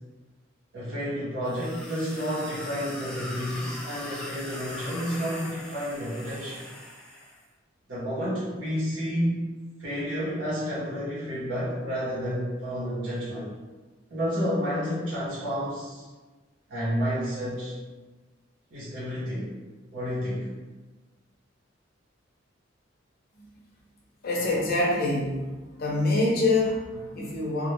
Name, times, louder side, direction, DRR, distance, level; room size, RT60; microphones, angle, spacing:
voice 1, 0.7-6.6 7.9-9.4 9.8-13.5 14.1-16.1 16.7-17.7 18.7-19.5 19.9-20.5, equal, 85° right, -10 dB, 0.7 m, -30 dB
sound 1, 1.4-7.4, left 1 dB, 5° left, 0.3 m, -40 dB
voice 2, 24.2-25.5 25.8-27.7, left 2 dB, 50° left, -4 dB, 0.5 m, -25 dB
2.1 x 2.1 x 3.0 m, 1.2 s
head